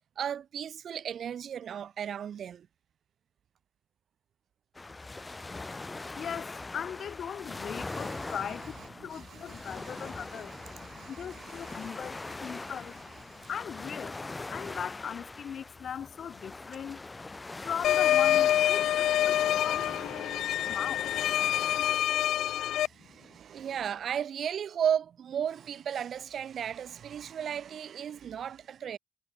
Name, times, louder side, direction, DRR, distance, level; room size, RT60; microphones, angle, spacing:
voice 1, 0.2-2.7 7.9-8.4 9.1-12.7 13.3-13.5 18.8-20.8 22.8-29.0, right 8 dB, 55° right, 2.9 m, -36 dB
sound 1, 4.7-22.0, left 3 dB, 20° left, 1.0 m, -42 dB
voice 2, 6.1-17.0 17.6-21.5 23.2-23.4, left 8 dB, 55° left, 1.1 m, -40 dB
sound 2, 17.8-22.9, left 12 dB, 75° left, 0.5 m, -26 dB
cardioid pair, 110°, 0 cm